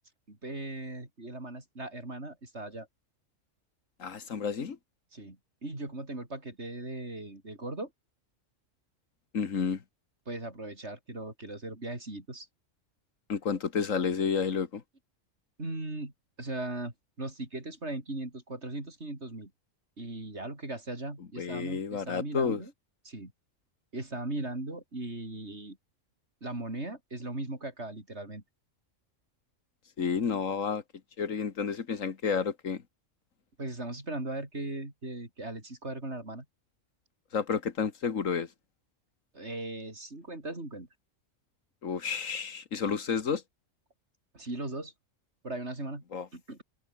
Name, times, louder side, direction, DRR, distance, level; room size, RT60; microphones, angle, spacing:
voice 1, 0.3-2.9 5.1-7.9 10.3-12.5 15.6-16.1 16.4-19.5 20.0-22.7 23.1-23.3 23.9-25.8 26.4-28.4 33.6-36.5 39.3-40.9 44.3-44.9 45.4-46.0 46.3-46.6, right 2 dB, 60° right, 5.4 m, -38 dB
voice 2, 4.0-4.8 9.3-9.8 13.3-14.8 21.4-22.6 30.0-30.8 31.2-32.8 37.3-38.5 41.8-43.4 46.1-46.3, left 6 dB, 85° left, 2.0 m, -30 dB
omnidirectional pair, 1.3 m